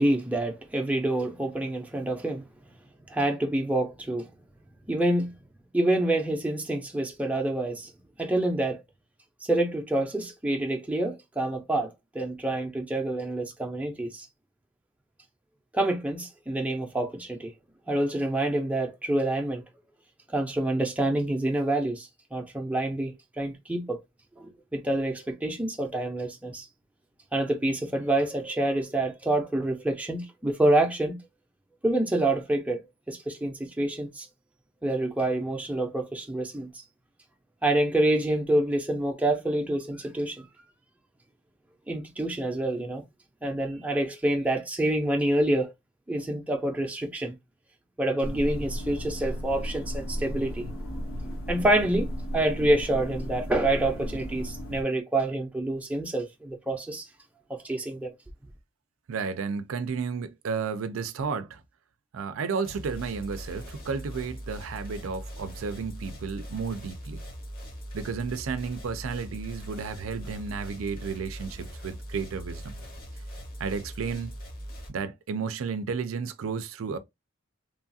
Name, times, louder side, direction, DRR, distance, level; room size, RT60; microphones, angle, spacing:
voice 1, 0.0-2.4 3.1-4.3 4.9-5.3 5.7-7.9 8.2-8.8 9.4-14.2 15.7-17.5 17.9-19.6 20.3-24.0 24.4-26.6 27.3-31.2 31.8-34.3 34.8-36.7 37.6-40.5 41.9-43.0 43.4-45.7 46.1-47.4 48.0-50.8 51.2-57.1 57.5-58.1, right 1 dB, 5° right, 0.5 m, -27 dB
sound 1, 48.2-54.8, equal, 80° left, 0.8 m, -35 dB
voice 2, 59.1-61.6 62.1-67.2 67.9-72.8 73.6-74.3 74.9-77.0, right 5 dB, 85° right, 0.4 m, -32 dB
sound 2, 62.7-74.9, equal, 50° left, 0.9 m, -41 dB
3.0 x 2.3 x 2.6 m
head